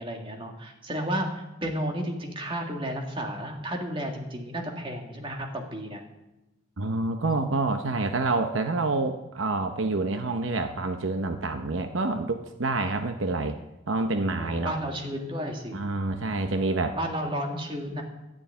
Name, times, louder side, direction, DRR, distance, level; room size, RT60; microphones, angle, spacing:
voice 1, 0.0-6.0 14.4-15.8 16.9-18.0, equal, 25° right, 2 dB, 2.0 m, -32 dB
voice 2, 6.8-13.6 13.9-14.7 15.7-17.0, right 3 dB, 75° right, 7 dB, 0.9 m, -27 dB
12.5 x 7.2 x 9.4 m, 0.97 s
head